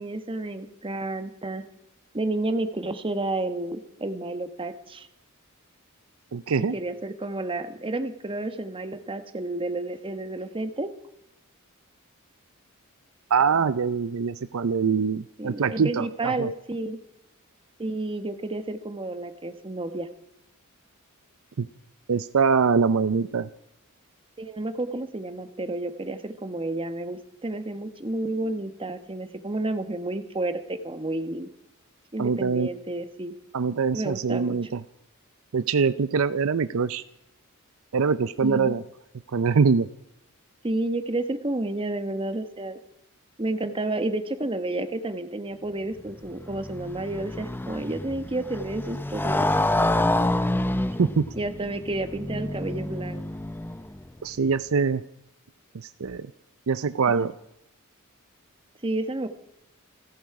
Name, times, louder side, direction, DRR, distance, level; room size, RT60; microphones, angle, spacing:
voice 1, 0.0-1.6 2.1-5.1 6.7-10.9 15.4-17.0 17.8-20.1 24.4-31.5 32.1-33.3 33.9-34.6 38.4-38.7 40.6-42.8 43.4-49.5 51.3-53.2 57.2-57.3 58.8-59.3, right 2 dB, 25° right, 9 dB, 1.2 m, -31 dB
voice 2, 6.3-6.8 13.3-16.5 21.6-21.7 22.1-23.5 32.2-32.7 33.5-34.8 35.5-37.0 37.9-38.8 39.3-39.9 51.0-51.3 54.2-55.0 55.7-56.3 56.7-57.3, right 5 dB, 70° right, 14 dB, 0.5 m, -23 dB
Motorcycle, 46.0-54.1, left 1 dB, 10° left, 0.6 m, -28 dB
29.0 x 10.5 x 4.8 m, 0.83 s
head